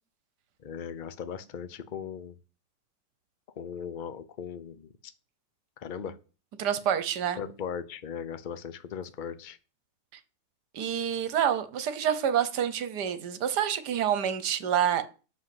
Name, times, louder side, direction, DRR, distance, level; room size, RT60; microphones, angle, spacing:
voice 1, 0.6-2.4 3.6-4.9 5.8-6.2 7.4-9.6, left 7 dB, 50° left, 0.5 m, -38 dB
voice 2, 6.6-7.4 10.7-15.0, right 9 dB, 70° right, 1.5 m, -27 dB
7.8 x 6.3 x 7.8 m
omnidirectional pair, 1.9 m